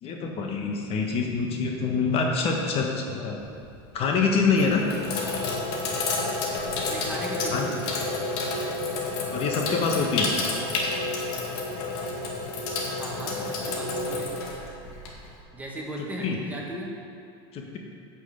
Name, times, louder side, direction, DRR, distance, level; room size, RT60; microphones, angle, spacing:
voice 1, 0.0-3.4 3.9-4.8 7.5-7.7 9.3-10.3 16.2-16.4 17.5-17.8, left 4 dB, 45° left, 1 dB, 1.4 m, -25 dB
Sink (filling or washing), 3.4-3.8 4.5-15.4, left 3 dB, 70° left, 2.1 m, -30 dB
voice 2, 6.9-7.8 12.9-14.3 15.5-16.9, right 1 dB, 10° right, -3 dB, 2.0 m, -37 dB
8.6 x 6.3 x 8.0 m, 2.5 s
supercardioid pair, 110°, 14 cm